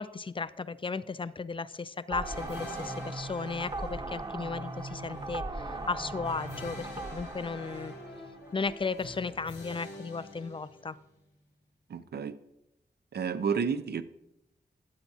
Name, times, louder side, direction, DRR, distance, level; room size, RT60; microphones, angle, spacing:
voice 1, 0.0-7.9 8.5-11.0, left 4 dB, 30° left, 16 dB, 0.4 m, -35 dB
sound 1, 2.1-8.8, right 3 dB, 25° right, 0.6 m, -39 dB
sound 2, 2.2-11.1, left 2 dB, 85° left, 3.0 m, -46 dB
voice 2, 11.9-12.3 13.1-14.0, right 6 dB, 70° right, 13 dB, 0.6 m, -30 dB
12.5 x 8.9 x 2.8 m, 0.86 s
wide cardioid pair, 110°, 18 cm